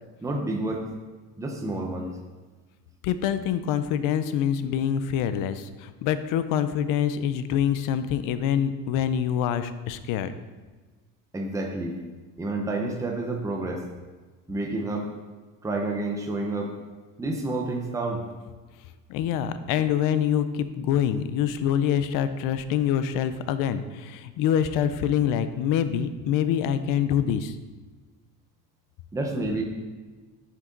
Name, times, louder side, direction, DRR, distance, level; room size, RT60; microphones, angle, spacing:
voice 1, 0.2-0.8 1.4-2.2 11.3-12.0 12.4-13.8 14.5-15.1 15.6-16.7 17.2-18.2 29.1-29.6, right 2 dB, 10° right, 1 dB, 0.8 m, -29 dB
voice 2, 3.0-10.3 19.1-27.6, left 9 dB, 75° left, 12 dB, 0.6 m, -25 dB
7.6 x 6.3 x 3.9 m, 1.3 s
cardioid pair, 150°, 32 cm